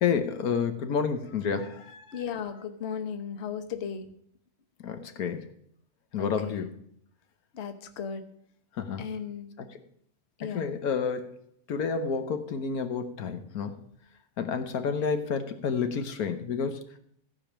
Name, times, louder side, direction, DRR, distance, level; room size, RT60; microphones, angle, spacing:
voice 1, 0.0-2.2 4.8-5.5 6.1-6.8 8.8-9.1 9.6-9.7 10.4-11.3 11.7-13.7 14.4-16.8, left 6 dB, 80° left, 7 dB, 1.5 m, -30 dB
voice 2, 2.1-4.1 6.2-6.6 7.5-8.2 9.0-9.5 10.4-10.6, left 7 dB, 50° left, 8 dB, 1.2 m, -36 dB
15.0 x 5.1 x 7.2 m, 0.67 s
omnidirectional pair, 1.6 m